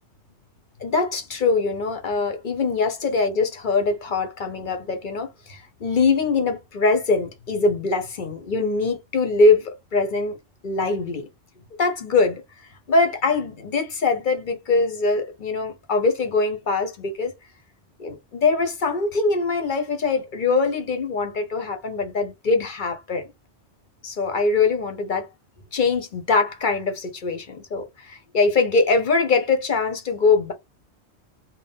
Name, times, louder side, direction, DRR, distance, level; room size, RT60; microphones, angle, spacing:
voice 1, 0.8-10.4 10.6-11.2 11.8-12.4 12.9-17.3 18.0-23.3 24.0-25.3 25.7-30.5, left 3 dB, 50° left, 0.8 m, -22 dB
3.6 x 2.1 x 3.9 m
omnidirectional pair, 1.2 m